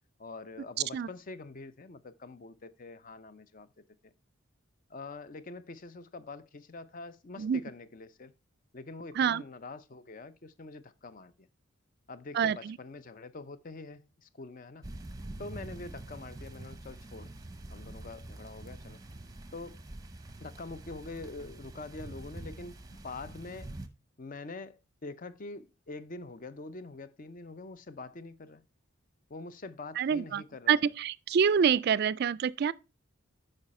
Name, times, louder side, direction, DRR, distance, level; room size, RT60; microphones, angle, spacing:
voice 1, 0.2-4.1 4.9-8.3 8.7-11.5 12.1-14.9 15.4-17.3 17.7-19.0 19.5-19.8 20.4-23.8 24.2-28.6 29.3-30.9, left 3 dB, 40° left, 0.5 m, -45 dB
voice 2, 12.3-12.8 30.0-32.7, right 7 dB, 50° right, 0.3 m, -27 dB
sound 1, 14.8-23.9, right 2 dB, 15° right, 0.7 m, -45 dB
8.8 x 5.4 x 4.2 m
head